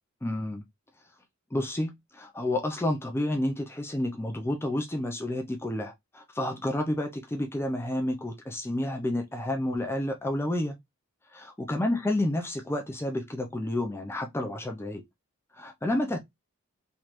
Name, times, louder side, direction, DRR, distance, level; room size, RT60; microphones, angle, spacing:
voice 1, 0.2-0.6 1.5-10.8 11.3-15.0 15.5-16.2, left 1 dB, 10° left, 0.4 m, -30 dB
3.2 x 3.0 x 2.4 m
head